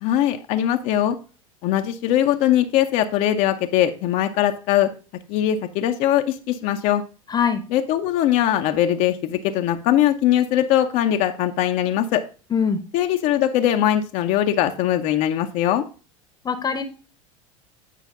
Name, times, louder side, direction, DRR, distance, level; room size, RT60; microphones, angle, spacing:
voice 1, 0.0-1.2 1.6-4.9 5.3-7.0 7.7-12.2 12.9-15.8, left 11 dB, 45° left, 5 dB, 0.7 m, -21 dB
voice 2, 7.3-7.6 12.5-12.8 16.4-16.8, left 6 dB, 25° left, 9 dB, 0.9 m, -22 dB
9.2 x 4.9 x 3.7 m, 0.35 s
figure-of-eight pair, 80°, 17 cm